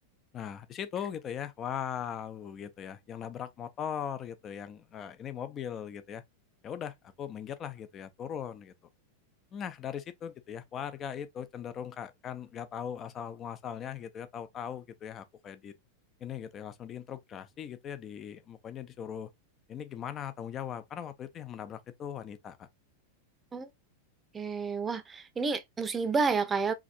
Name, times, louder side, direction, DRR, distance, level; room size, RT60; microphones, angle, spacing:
voice 1, 0.3-6.2 6.6-8.7 9.5-15.7 16.2-19.3 19.7-22.7, left 9 dB, 30° left, 0.8 m, -39 dB
voice 2, 24.3-26.7, right 4 dB, 15° right, 0.8 m, -30 dB
4.9 x 3.5 x 2.6 m
figure-of-eight pair, 90°, 0 cm